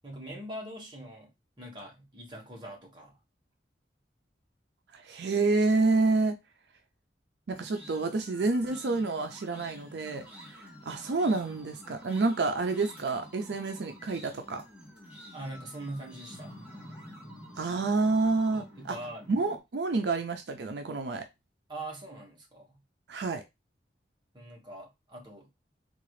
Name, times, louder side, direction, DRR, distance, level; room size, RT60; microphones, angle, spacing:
voice 1, 0.0-1.3 1.6-3.2 15.3-16.6 18.5-19.3 21.7-22.8 24.3-25.5, right 1 dB, 25° right, 1.1 m, -42 dB
voice 2, 4.9-6.4 7.5-14.6 17.6-19.0 19.3-21.2 23.1-23.4, right 3 dB, 75° right, 0.5 m, -28 dB
sound 1, 7.5-19.6, equal, 10° right, 1.0 m, -49 dB
3.7 x 2.4 x 3.1 m
head